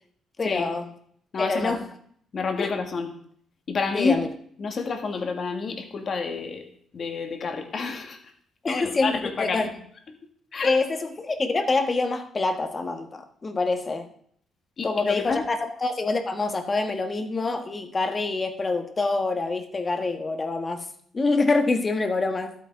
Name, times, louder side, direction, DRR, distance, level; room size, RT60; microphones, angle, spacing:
voice 1, 0.4-0.9 1.4-1.8 2.6-2.7 3.9-4.3 8.6-9.7 10.6-14.1 14.8-20.8 21.1-22.5, left 3 dB, 30° left, 6 dB, 1.5 m, -26 dB
voice 2, 1.3-1.8 2.3-3.1 3.7-4.2 4.6-6.6 6.9-8.2 8.7-9.7 10.5-10.7 14.8-15.4, left 4 dB, 50° left, 4 dB, 2.1 m, -28 dB
12.5 x 8.3 x 4.8 m, 0.63 s
cardioid pair, 90°, 0 cm